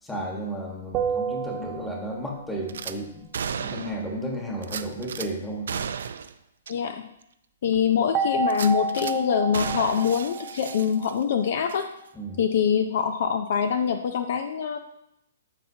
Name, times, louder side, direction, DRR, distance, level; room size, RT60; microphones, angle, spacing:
voice 1, 0.0-5.7 12.1-12.4, right 1 dB, 5° left, -1 dB, 1.5 m, -33 dB
sound 1, 0.9-2.5 8.1-11.5, right 4 dB, 20° right, 0.6 m, -30 dB
Gunshot gunfire / Glass, 2.7-3.0 3.3-4.1 4.6-5.3 5.7-6.3 6.7-6.8 7.2-7.3 8.5-9.2 9.5-11.3 11.7-11.8, right 7 dB, 70° right, 0.5 m, -34 dB
voice 2, 6.7-7.0 7.6-11.9 12.4-14.8, left 7 dB, 55° left, 8 dB, 0.6 m, -24 dB
13.0 x 5.8 x 2.8 m, 0.79 s
hypercardioid pair, 160°, 0 cm